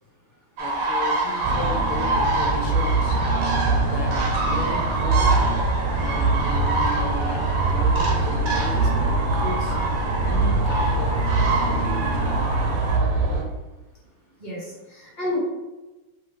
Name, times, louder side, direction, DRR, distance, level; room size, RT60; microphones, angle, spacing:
voice 1, 0.6-3.2 3.8-5.4 5.9-7.4 7.6-9.8 10.3-11.2 11.6-12.7, left 3 dB, 85° left, 1 dB, 1.6 m, -35 dB
sound 1, 0.6-13.0, right 2 dB, 60° right, 1.0 m, -27 dB
sound 2, 1.4-13.4, right 3 dB, 80° right, 1.4 m, -23 dB
voice 2, 14.4-15.4, left 1 dB, 25° left, -7 dB, 1.4 m, -30 dB
4.6 x 2.8 x 3.6 m, 1.1 s
omnidirectional pair, 2.2 m